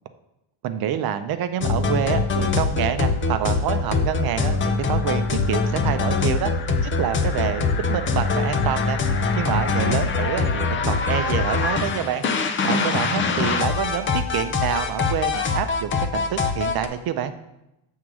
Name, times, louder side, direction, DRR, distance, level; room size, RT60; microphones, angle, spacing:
voice 1, 0.6-6.5 6.8-9.0 9.3-12.2 12.6-17.3, right 9 dB, 50° right, 10 dB, 0.6 m, -27 dB
sound 1, 1.6-16.9, left 4 dB, 25° left, 0.4 m, -23 dB
7.8 x 3.6 x 6.0 m, 0.90 s
cardioid pair, 175°, 48 cm